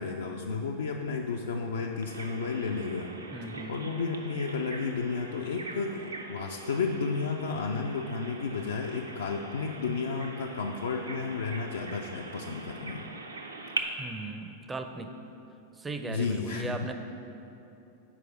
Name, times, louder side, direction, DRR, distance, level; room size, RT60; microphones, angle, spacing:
voice 1, 0.0-3.1 3.7-13.0 16.1-16.9, left 4 dB, 65° left, 1 dB, 0.3 m, -32 dB
Bird vocalization bird call bird song, 2.0-13.8, right 3 dB, 80° right, 0.5 m, -42 dB
voice 2, 3.3-3.8 14.0-15.2 15.7-16.9, right 3 dB, 15° right, 7 dB, 0.4 m, -37 dB
4.9 x 4.6 x 5.9 m, 2.9 s
figure-of-eight pair, 90°, 0 cm